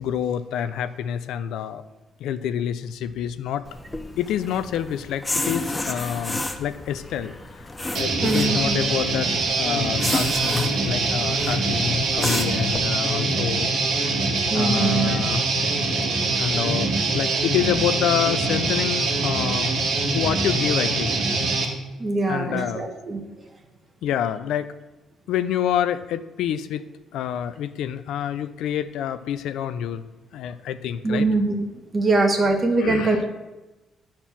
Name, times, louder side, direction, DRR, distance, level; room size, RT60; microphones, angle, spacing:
voice 1, 0.0-1.8 2.2-3.6 4.2-7.7 7.9-13.7 14.0-14.2 14.5-15.5 16.4-19.7 20.1-21.2 22.3-22.9 24.0-24.7 25.3-26.8 27.1-30.0 30.3-31.3 32.8-33.2, left 10 dB, 85° left, 12 dB, 0.5 m, -27 dB
sound 1, 3.6-12.8, left 2 dB, 15° left, 0.9 m, -32 dB
Guitar, 7.9-21.6, right 3 dB, 75° right, 2.0 m, -23 dB
voice 2, 8.2-8.8 14.5-15.2 22.0-23.2 31.0-31.6 31.9-33.3, right 3 dB, 35° right, 3 dB, 1.7 m, -22 dB
10.0 x 4.4 x 7.3 m, 1.1 s
cardioid pair, 90°, 0 cm